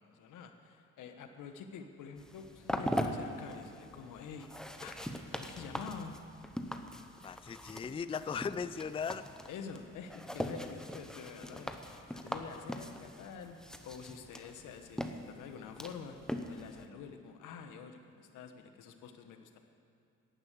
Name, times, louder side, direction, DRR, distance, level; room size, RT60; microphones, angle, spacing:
voice 1, 0.0-4.5 4.8-6.2 9.5-16.2 16.5-19.6, left 6 dB, 85° left, 7 dB, 1.3 m, -47 dB
sound 1, 2.2-16.9, equal, ahead, 1.0 m, -41 dB
voice 2, 7.2-9.2, left 6 dB, 20° left, 14 dB, 0.4 m, -37 dB
11.5 x 11.0 x 8.2 m, 2.7 s
cardioid pair, 90°, 30 cm